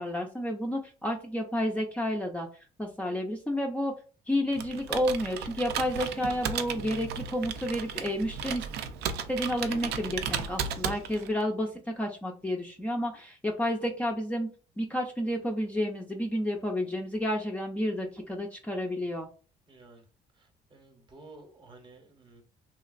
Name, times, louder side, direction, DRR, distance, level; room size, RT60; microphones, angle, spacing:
voice 1, 0.0-2.5 2.8-3.9 4.3-8.7 9.3-14.5 14.8-19.3, equal, 10° left, 0.4 m, -30 dB
Computer keyboard, 4.5-11.4, right 7 dB, 75° right, 0.4 m, -35 dB
voice 2, 19.7-20.1 20.3-22.4, right 2 dB, 25° right, 0.8 m, -53 dB
3.0 x 2.4 x 2.4 m
cardioid pair, 110°, 17 cm